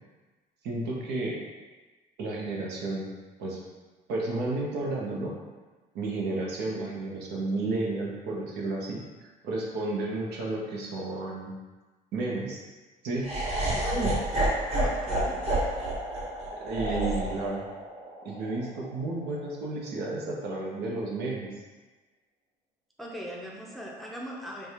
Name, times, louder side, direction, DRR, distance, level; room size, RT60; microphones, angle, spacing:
voice 1, 0.6-1.4 2.2-3.1 3.4-3.6 4.1-5.3 5.9-11.5 12.1-12.6 13.0-13.3 13.9-14.2 16.6-17.6 18.2-21.5, right 2 dB, 80° right, -2 dB, 0.9 m, -32 dB
Laughter, 13.2-19.4, right 1 dB, 40° right, 1.4 m, -30 dB
voice 2, 14.8-15.7 16.9-17.1 23.0-24.7, equal, ahead, -2 dB, 0.5 m, -40 dB
3.3 x 2.3 x 4.2 m, 1.3 s
cardioid pair, 110°, 17 cm